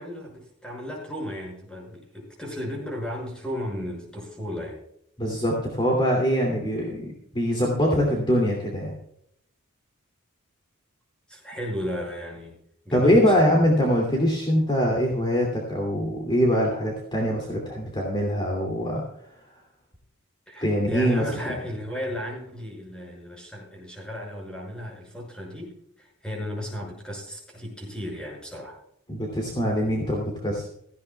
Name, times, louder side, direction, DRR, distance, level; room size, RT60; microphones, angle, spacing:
voice 1, 0.0-4.8 11.3-12.6 12.8-13.6 20.5-28.8, equal, 5° left, -1 dB, 6.1 m, -34 dB
voice 2, 5.2-8.9 12.9-19.0 20.6-21.4 29.1-30.7, equal, 20° left, -1 dB, 2.7 m, -23 dB
17.0 x 15.5 x 2.3 m, 0.72 s
head